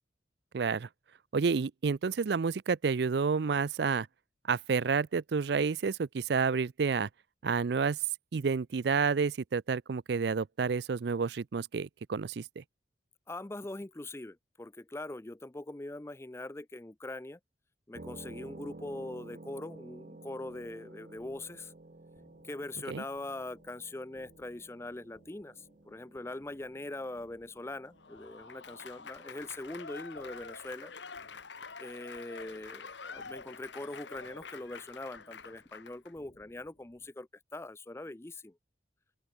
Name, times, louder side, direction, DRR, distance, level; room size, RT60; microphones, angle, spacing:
voice 1, 0.5-0.9 1.3-4.1 4.5-7.1 7.4-8.0 8.3-12.6 22.9-23.0, right 5 dB, 65° right, 0.4 m, -30 dB
voice 2, 13.3-17.4 17.9-21.7 22.4-30.9 31.8-38.6, left 2 dB, 15° left, 0.4 m, -42 dB
sound 1, 17.9-28.2, right 2 dB, 45° right, 0.9 m, -52 dB
sound 2, 20.5-37.1, equal, 40° left, 3.6 m, -66 dB
Applause / Crowd, 27.9-36.1, left 5 dB, 80° left, 2.0 m, -47 dB
open air
head